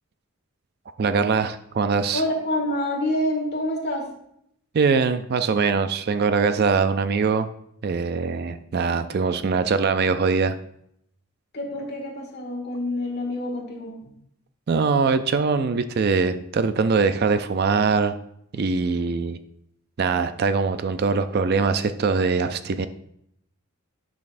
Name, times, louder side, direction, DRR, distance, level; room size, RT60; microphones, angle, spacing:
voice 1, 1.0-2.2 4.7-7.5 7.8-10.6 14.7-18.2 18.5-19.4 20.0-22.9, right 5 dB, 45° right, 10 dB, 0.4 m, -22 dB
voice 2, 2.1-4.1 11.5-14.0, left 1 dB, 45° left, -1 dB, 2.0 m, -27 dB
10.5 x 6.2 x 2.5 m, 0.73 s
head